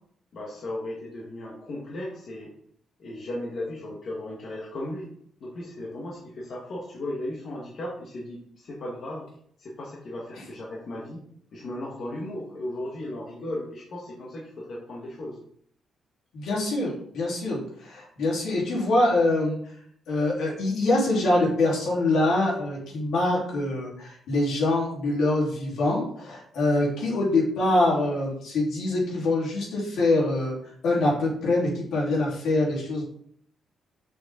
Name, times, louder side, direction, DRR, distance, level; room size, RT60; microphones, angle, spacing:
voice 1, 0.3-2.5 3.0-5.1 5.4-9.2 9.6-11.2 11.5-15.4, left 1 dB, 50° left, -4 dB, 1.6 m, -36 dB
voice 2, 16.3-19.6 20.1-30.6 30.8-33.0, left 2 dB, 75° left, -4 dB, 3.6 m, -24 dB
6.8 x 6.4 x 3.8 m, 0.64 s
cardioid pair, 145°, 0 cm